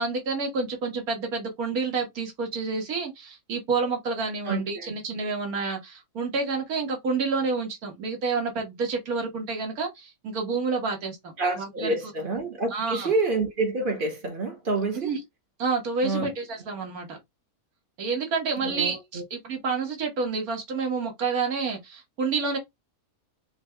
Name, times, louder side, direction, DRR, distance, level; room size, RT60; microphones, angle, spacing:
voice 1, 0.0-12.0 12.7-13.1 14.9-15.2 15.6-17.2 18.0-22.6, right 4 dB, 75° right, 1.9 m, -29 dB
voice 2, 4.5-4.9 11.4-15.1 16.0-16.3 18.6-19.2, right 2 dB, 40° right, 1.0 m, -28 dB
4.4 x 2.4 x 4.4 m
omnidirectional pair, 1.6 m